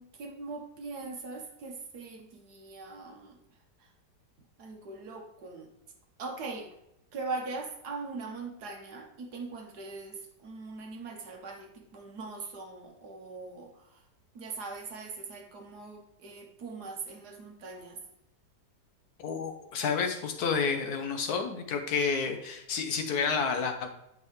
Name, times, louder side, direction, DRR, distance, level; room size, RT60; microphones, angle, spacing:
voice 1, 0.0-3.4 4.6-5.7 6.2-6.7 7.1-13.7 14.3-18.0, right 3 dB, 70° right, 2 dB, 1.6 m, -41 dB
voice 2, 19.2-23.9, left 5 dB, 65° left, 5 dB, 1.3 m, -30 dB
8.7 x 5.4 x 3.1 m, 0.84 s
omnidirectional pair, 1.9 m